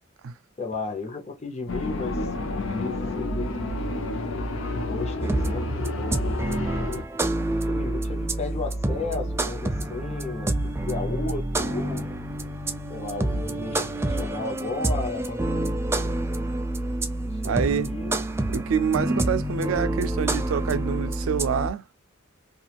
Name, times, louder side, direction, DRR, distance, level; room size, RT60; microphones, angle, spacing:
voice 1, 0.6-3.6 4.1-6.4 7.3-12.1 12.9-16.5 17.2-18.2 19.0-19.3, left 3 dB, 35° left, 0.8 m, -35 dB
sound 1, 1.7-7.0, left 2 dB, 85° left, 0.7 m, -30 dB
sound 2, 5.2-21.7, right 1 dB, 15° right, 0.3 m, -28 dB
voice 2, 17.4-17.9 18.5-21.8, right 7 dB, 85° right, 0.4 m, -26 dB
3.0 x 2.4 x 2.4 m
head